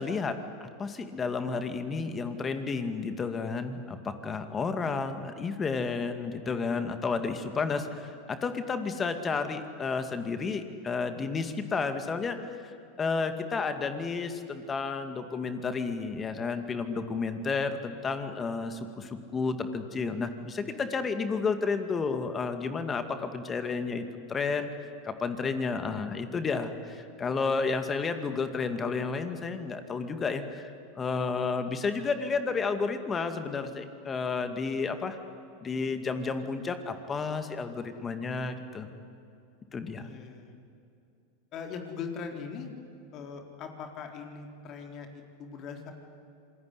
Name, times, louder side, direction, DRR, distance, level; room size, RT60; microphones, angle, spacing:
voice 1, 0.0-24.7 25.0-35.2 35.6-38.9 39.7-40.1, left 4 dB, 25° left, 8 dB, 2.3 m, -31 dB
voice 2, 40.0-40.5 41.5-42.7 43.1-45.9, left 6 dB, 45° left, 3 dB, 4.0 m, -40 dB
26.5 x 21.0 x 9.8 m, 2.6 s
hypercardioid pair, 95°, 0 cm